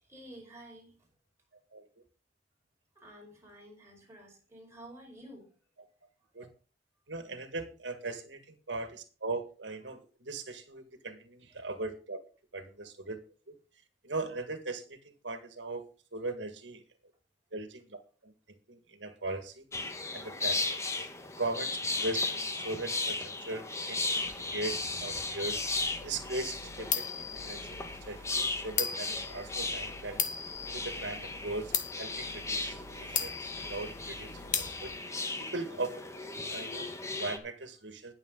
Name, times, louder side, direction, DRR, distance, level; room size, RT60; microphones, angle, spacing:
voice 1, 0.1-0.9 3.0-5.5 6.4-6.5, right 1 dB, 15° right, -1 dB, 5.2 m, -51 dB
voice 2, 7.1-12.2 12.5-13.2 13.5-13.6 14.0-16.8 17.5-18.3 18.7-19.7 20.1-20.7 21.4-25.6 26.0-27.8 28.1-30.2 30.7-34.9 35.4-38.1, right 2 dB, 85° right, 8 dB, 1.8 m, -39 dB
sound 1, 19.7-37.4, left 3 dB, 15° left, 1.4 m, -36 dB
sound 2, 25.5-35.0, left 8 dB, 45° left, 1.6 m, -38 dB
20.5 x 7.1 x 3.9 m, 0.36 s
head